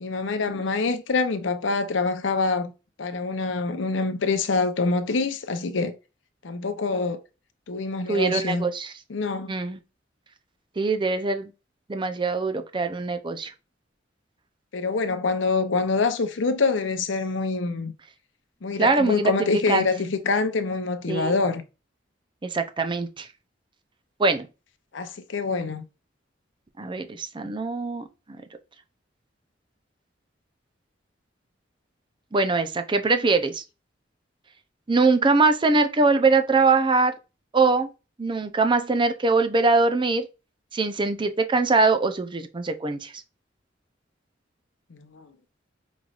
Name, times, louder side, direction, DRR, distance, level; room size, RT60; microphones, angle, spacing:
voice 1, 0.0-2.7 3.0-5.9 6.4-7.2 7.7-8.7 9.1-9.5 14.7-17.9 18.6-21.6 24.9-25.8 44.9-45.3, left 4 dB, 75° left, 0.6 m, -25 dB
voice 2, 8.1-8.9 9.5-9.8 10.8-11.5 11.9-13.5 18.8-19.9 21.1-21.3 22.4-23.3 24.2-24.5 26.8-28.1 32.3-33.6 34.9-37.1 37.5-37.9 38.2-40.3 40.7-43.1, right 3 dB, 25° right, 0.5 m, -22 dB
5.3 x 3.1 x 2.4 m
head